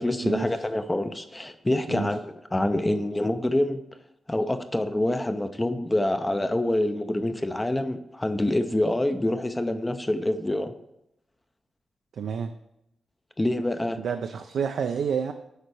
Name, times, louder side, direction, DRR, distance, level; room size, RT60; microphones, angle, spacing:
voice 1, 0.0-3.8 4.3-10.7 13.4-14.0, left 1 dB, 15° left, 9 dB, 0.4 m, -26 dB
voice 2, 12.2-12.5 14.0-15.3, right 7 dB, 75° right, 7 dB, 0.4 m, -29 dB
6.6 x 4.5 x 4.7 m, 0.83 s
cardioid pair, 105°, 0 cm